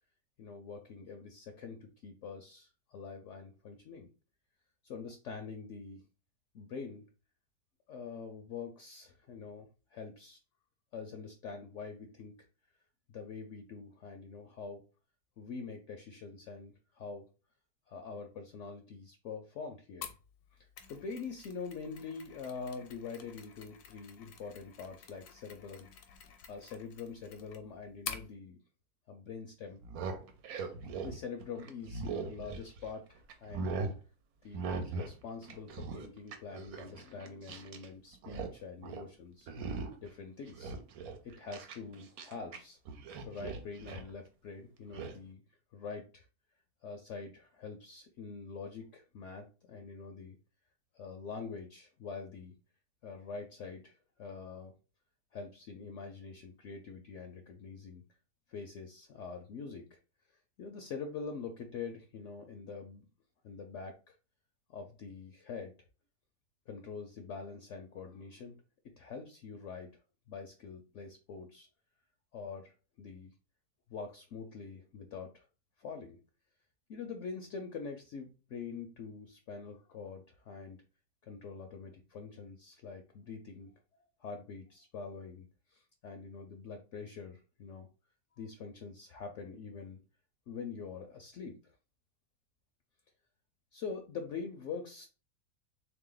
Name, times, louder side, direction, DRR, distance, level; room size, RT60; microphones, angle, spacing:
voice 1, 0.4-4.1 4.8-6.1 6.5-7.0 7.9-10.4 10.9-12.3 13.1-14.8 15.4-17.3 17.9-20.1 20.5-20.6 20.9-25.9 26.5-28.6 29.1-29.8 31.0-33.8 34.4-39.5 40.0-40.7 41.2-42.8 43.2-45.4 45.7-46.3 46.8-50.4 50.9-52.6 53.0-54.7 55.3-58.0 58.5-60.0 60.6-63.0 63.4-64.2 64.7-65.7 66.7-68.6 69.0-69.9 70.3-71.7 72.3-73.3 73.9-75.5 75.8-76.2 76.9-80.8 81.2-83.7 84.2-87.9 88.4-90.0 90.5-91.7 93.7-95.1, left 5 dB, 65° left, 5 dB, 0.8 m, -45 dB
Mechanisms, 20.0-28.3, left 7 dB, 80° left, 1.2 m, -49 dB
sound 1, 29.7-33.0 33.3-34.0 34.5-35.2 35.4-37.9 38.1-38.5 38.8-39.1 39.5-40.1 40.5-42.6 42.9-44.1 44.9-45.1, right 4 dB, 70° right, 1.1 m, -40 dB
3.5 x 2.8 x 3.8 m, 0.34 s
omnidirectional pair, 1.6 m